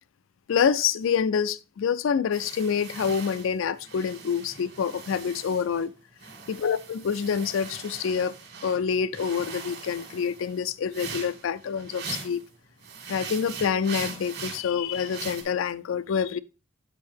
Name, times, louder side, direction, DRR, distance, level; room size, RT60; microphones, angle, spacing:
voice 1, 0.5-5.9 6.5-8.3 8.6-12.4 13.1-16.4, left 7 dB, 75° left, 0.4 m, -27 dB
sound 1, 2.3-5.9 6.2-8.8 9.1-12.5 12.8-15.4, right 5 dB, 55° right, 1.6 m, -41 dB
7.5 x 5.1 x 3.4 m
head